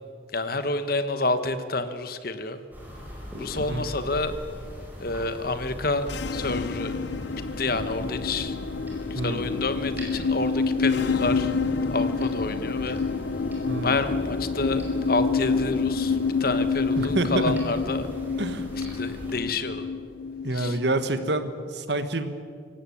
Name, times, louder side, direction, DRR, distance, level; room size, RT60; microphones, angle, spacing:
voice 1, 0.3-2.6 3.4-4.3 5.0-6.9 7.6-8.6 9.1-11.5 11.9-13.0 13.8-18.1 18.8-19.9 20.5-20.8, left 3 dB, 50° left, 10 dB, 1.3 m, -29 dB
sound 1, 2.7-19.4, equal, 10° right, 5.2 m, -41 dB
sound 2, 6.0-21.5, left 4 dB, 65° left, 0.7 m, -28 dB
sound 3, 7.9-19.8, right 1 dB, 30° left, 4.8 m, -43 dB
voice 2, 13.7-14.0 17.0-17.6 18.4-18.7 20.4-22.4, right 2 dB, 60° right, 10 dB, 1.5 m, -27 dB
25.0 x 16.5 x 8.7 m, 2.3 s
head